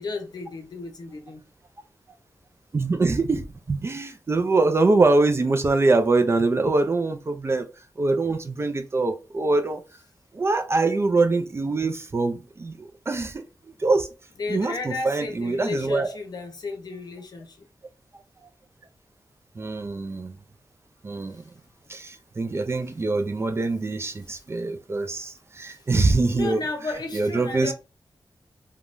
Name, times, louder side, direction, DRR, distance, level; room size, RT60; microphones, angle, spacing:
voice 1, 0.0-1.4 14.4-17.6 26.3-27.7, left 3 dB, 60° left, 0.7 m, -33 dB
voice 2, 2.7-7.7 8.0-9.8 10.3-13.4 13.8-14.1 14.5-16.1 19.6-20.3 21.0-21.4 21.9-26.6 27.1-27.7, right 3 dB, 35° right, 0.4 m, -23 dB
3.3 x 2.2 x 2.5 m
wide cardioid pair, 130°, 8 cm